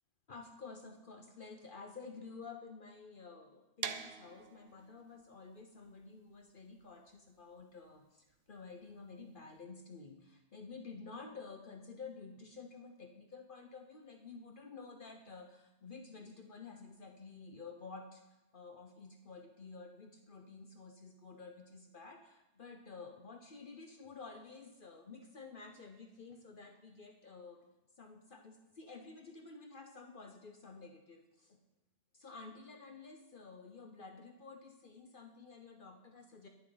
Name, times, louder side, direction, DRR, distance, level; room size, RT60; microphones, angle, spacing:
voice 1, 0.3-18.2 18.5-27.6 28.0-31.6 32.1-36.5, left 4 dB, 50° left, 4 dB, 0.9 m, -51 dB
sound 1, 3.8-9.6, right 8 dB, 80° right, 1.1 m, -47 dB
21.0 x 7.2 x 3.9 m, 0.99 s
omnidirectional pair, 1.2 m